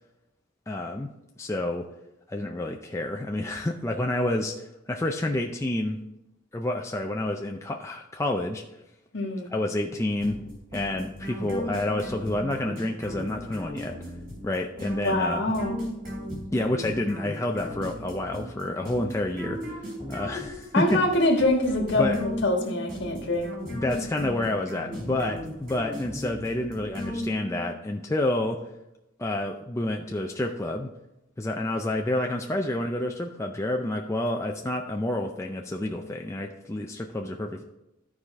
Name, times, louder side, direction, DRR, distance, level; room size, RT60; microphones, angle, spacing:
voice 1, 0.7-1.1 1.4-1.9 2.3-6.0 6.5-8.6 9.5-10.4 10.7-14.0 14.4-15.4 16.5-21.0 22.0-22.2 23.7-28.6 29.2-30.9 31.4-37.6, left 1 dB, 15° left, 2 dB, 0.4 m, -29 dB
voice 2, 9.1-9.5 15.0-15.8 20.7-23.5, left 1 dB, 55° left, 2 dB, 1.4 m, -24 dB
sound 1, 10.2-27.7, equal, 45° right, 3.1 m, -37 dB
13.0 x 4.9 x 3.6 m, 0.92 s
head